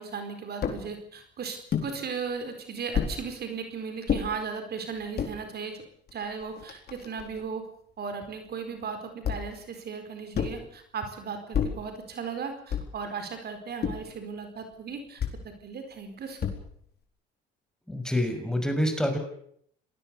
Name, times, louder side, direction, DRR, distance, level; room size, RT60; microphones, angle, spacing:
voice 1, 0.0-5.8 6.1-7.6 8.0-16.5, right 5 dB, 50° right, 7 dB, 4.5 m, -36 dB
sound 1, 0.6-0.8 1.7-1.9 2.9-3.2 4.1-4.3 5.0-5.3 6.1-6.2 6.4-7.4 9.2-9.6 10.3-10.7 11.5-11.9 12.7-13.0 13.8-14.2 15.2-15.4 16.4-16.8, left 7 dB, 50° left, 4.3 m, -30 dB
voice 2, 17.9-19.2, left 1 dB, 5° left, 5 dB, 6.4 m, -27 dB
26.5 x 19.5 x 6.9 m, 0.67 s
supercardioid pair, 75°, 21 cm